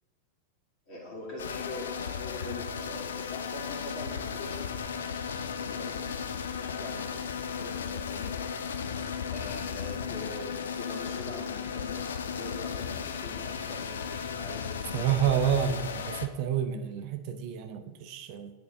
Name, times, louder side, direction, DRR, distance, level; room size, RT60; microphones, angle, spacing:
voice 1, 0.9-4.7 5.6-6.1 6.6-8.3 9.3-14.7, left 3 dB, 40° left, 2.3 m, -43 dB
sound 1, 1.4-16.3, left 6 dB, 65° left, 0.5 m, -35 dB
voice 2, 14.9-18.5, right 9 dB, 45° right, 0.5 m, -29 dB
10.0 x 3.6 x 3.5 m
figure-of-eight pair, 90°, 0 cm